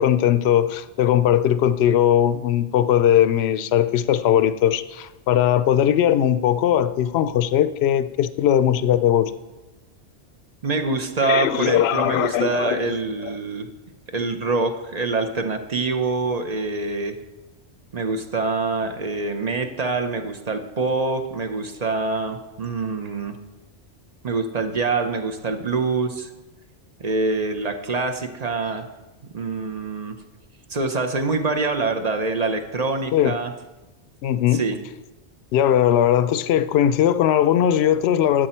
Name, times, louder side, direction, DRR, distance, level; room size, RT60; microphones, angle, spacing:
voice 1, 0.0-9.3 11.2-13.0 13.2-13.4 33.1-33.4 34.2-34.6 35.5-38.5, left 10 dB, 75° left, 13 dB, 0.8 m, -19 dB
voice 2, 10.6-13.7 14.1-17.2 17.9-23.4 24.2-26.3 27.0-28.9 29.3-30.2 30.7-33.5 34.5-34.8, right 3 dB, 40° right, 6 dB, 0.8 m, -25 dB
12.5 x 7.7 x 4.4 m, 1.1 s
omnidirectional pair, 1.1 m